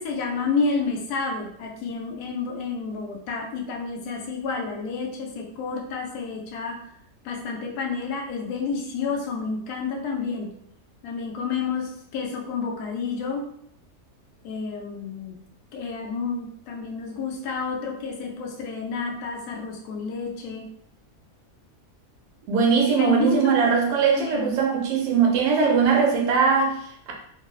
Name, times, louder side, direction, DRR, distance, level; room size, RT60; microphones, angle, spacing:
voice 1, 0.0-6.8 7.2-10.5 11.0-13.5 14.4-15.4 15.7-20.7 23.0-23.6 24.1-24.5, left 4 dB, 85° left, 0 dB, 1.1 m, -30 dB
voice 2, 22.5-27.1, right 5 dB, 90° right, 0 dB, 1.1 m, -21 dB
3.1 x 2.0 x 2.3 m, 0.69 s
omnidirectional pair, 1.6 m